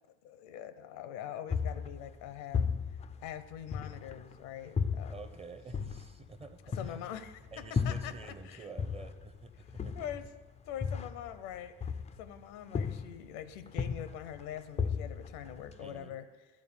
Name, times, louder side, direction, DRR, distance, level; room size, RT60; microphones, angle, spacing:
voice 1, 0.2-5.2 6.7-7.4 7.8-8.7 9.6-10.3 10.7-16.5, left 10 dB, 75° left, 12 dB, 0.8 m, -44 dB
sound 1, 1.5-4.3 4.8-8.5 8.8-12.4 12.7-13.3 13.7-16.0, left 6 dB, 20° left, 0.4 m, -35 dB
voice 2, 5.1-6.8 7.5-10.0 15.8-16.1, right 4 dB, 15° right, 9 dB, 0.7 m, -49 dB
12.0 x 4.2 x 7.0 m, 1.3 s
supercardioid pair, 85°, 35 cm